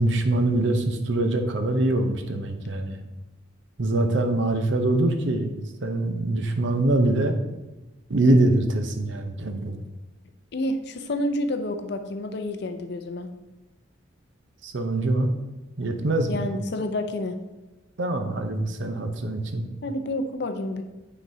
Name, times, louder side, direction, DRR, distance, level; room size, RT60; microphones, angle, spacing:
voice 1, 0.0-3.0 3.8-7.3 8.1-9.8 14.6-15.4 15.8-16.5 18.0-19.7, right 2 dB, 65° right, 6 dB, 0.7 m, -24 dB
voice 2, 10.5-13.3 16.3-17.3 19.8-20.8, left 1 dB, 55° left, 7 dB, 0.5 m, -29 dB
9.1 x 4.0 x 2.7 m, 1.1 s
head